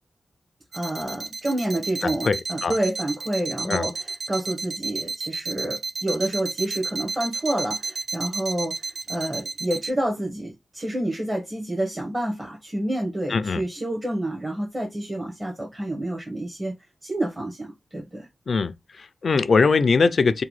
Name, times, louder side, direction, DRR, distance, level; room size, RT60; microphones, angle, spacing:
voice 1, 0.7-16.7 17.0-18.3, right 1 dB, 25° right, 0.9 m, -28 dB
sound 1, 0.7-9.9, right 4 dB, 80° right, 0.5 m, -31 dB
voice 2, 2.0-2.4 2.6-2.7 3.7-3.9 13.3-13.6 18.5-18.7 19.0-20.4, left 4 dB, 70° left, 0.3 m, -21 dB
2.8 x 2.2 x 3.1 m
cardioid pair, 60°, 0 cm